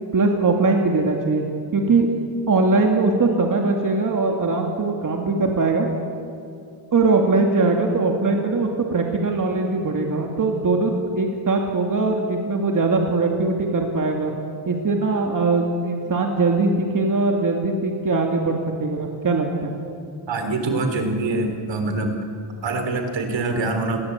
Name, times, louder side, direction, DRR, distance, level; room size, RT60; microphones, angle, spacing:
voice 1, 0.1-1.4 1.7-2.1 2.5-5.9 6.9-14.3 14.7-19.7, right 3 dB, 40° right, 2 dB, 2.6 m, -21 dB
voice 2, 20.3-22.1 22.6-24.0, right 2 dB, 65° right, 6 dB, 3.6 m, -24 dB
30.0 x 21.5 x 8.3 m, 2.4 s
wide cardioid pair, 145°, 47 cm